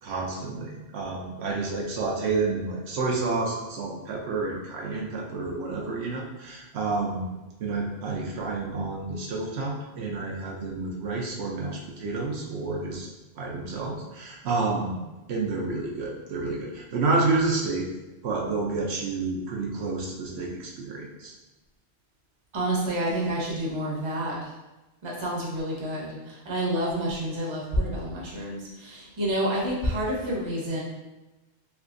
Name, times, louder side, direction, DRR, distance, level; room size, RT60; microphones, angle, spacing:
voice 1, 0.0-7.3 7.6-13.1 13.4-15.0 15.3-17.9 18.2-21.3, right 3 dB, 70° right, -2 dB, 0.8 m, -29 dB
voice 2, 22.5-24.5 25.0-30.8, right 1 dB, 30° right, -4 dB, 0.7 m, -29 dB
3.3 x 2.9 x 2.5 m, 1.1 s
omnidirectional pair, 1.2 m